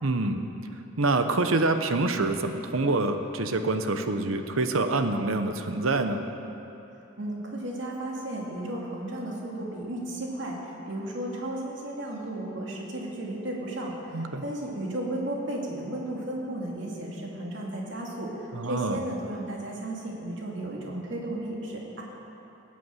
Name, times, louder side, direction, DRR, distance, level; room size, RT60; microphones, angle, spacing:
voice 1, 0.0-0.5 1.0-6.2 14.1-14.4 18.5-19.0, right 2 dB, 75° right, 7 dB, 0.9 m, -26 dB
voice 2, 7.2-22.0, right 1 dB, 60° right, -2 dB, 2.6 m, -34 dB
18.5 x 8.5 x 7.7 m, 2.9 s
head